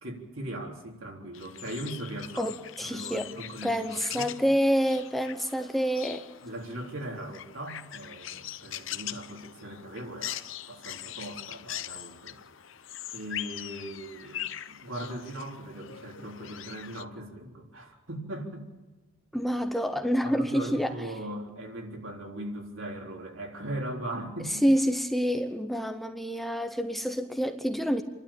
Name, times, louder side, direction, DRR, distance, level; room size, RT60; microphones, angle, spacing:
voice 1, 0.0-2.5 2.8-4.3 6.4-12.4 13.1-18.7 20.2-24.6, right 1 dB, 70° right, 0 dB, 3.8 m, -39 dB
sound 1, 1.3-17.0, left 12 dB, 65° left, 0.7 m, -42 dB
voice 2, 2.4-3.3 3.6-6.2 19.3-20.9 24.5-28.0, equal, ahead, 6 dB, 0.8 m, -27 dB
28.5 x 12.0 x 8.8 m, 1.2 s
head